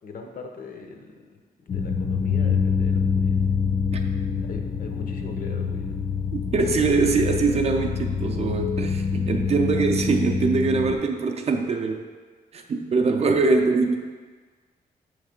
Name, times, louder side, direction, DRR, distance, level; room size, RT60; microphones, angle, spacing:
voice 1, 0.0-3.4 4.4-5.9 13.5-13.6, left 4 dB, 65° left, 3 dB, 0.7 m, -41 dB
sound 1, 1.7-11.0, left 5 dB, 35° left, 0.4 m, -26 dB
voice 2, 6.3-12.1 12.5-14.0, right 4 dB, 45° right, 3 dB, 0.4 m, -23 dB
6.1 x 3.2 x 5.1 m, 1.5 s
wide cardioid pair, 180°, 15 cm